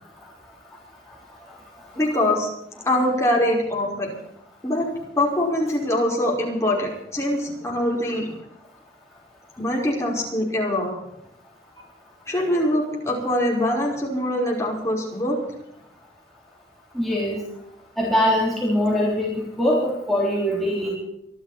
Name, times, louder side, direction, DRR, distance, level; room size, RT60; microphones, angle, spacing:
voice 1, 1.9-2.5 2.8-4.1 4.6-4.9 5.1-8.3 9.6-10.9 12.3-15.4, left 1 dB, 15° left, -2 dB, 5.3 m, -23 dB
voice 2, 16.9-17.4 18.0-21.0, equal, ahead, -5 dB, 3.6 m, -22 dB
25.0 x 12.0 x 4.4 m, 0.80 s
head